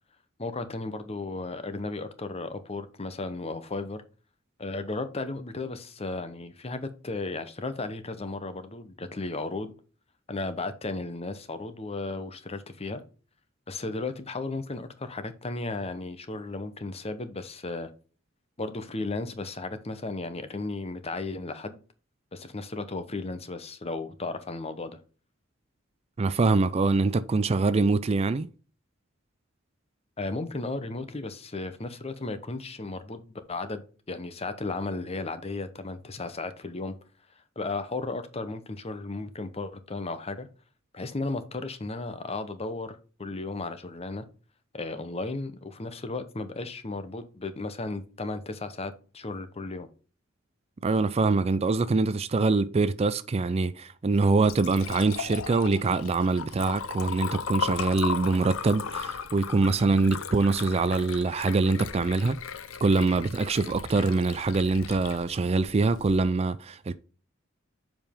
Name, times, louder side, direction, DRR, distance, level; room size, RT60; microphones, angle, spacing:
voice 1, 0.4-4.0 4.6-9.7 10.3-13.0 13.7-17.9 18.6-21.8 22.3-25.0 30.2-33.2 33.5-36.9 37.6-40.5 40.9-44.2 44.7-49.9, left 3 dB, 30° left, 0.9 m, -35 dB
voice 2, 26.2-28.5 50.8-62.4 62.8-67.0, right 3 dB, 30° right, 0.4 m, -24 dB
Liquid, 54.1-66.2, left 6 dB, 85° left, 0.7 m, -37 dB
7.1 x 5.2 x 3.6 m
head